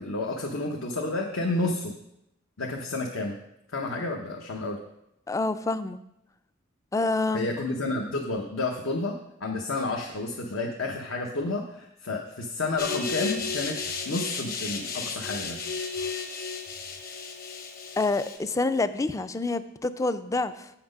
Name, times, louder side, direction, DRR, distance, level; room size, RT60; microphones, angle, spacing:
voice 1, 0.0-1.9 2.6-3.4 3.7-4.8 7.3-15.6, left 2 dB, 75° left, 0 dB, 0.9 m, -30 dB
voice 2, 5.3-6.0 6.9-7.5 18.0-20.7, left 3 dB, 15° left, 12 dB, 0.3 m, -27 dB
sound 1, 12.8-18.4, left 5 dB, 45° left, 1.1 m, -33 dB
7.9 x 5.9 x 5.3 m, 0.82 s
head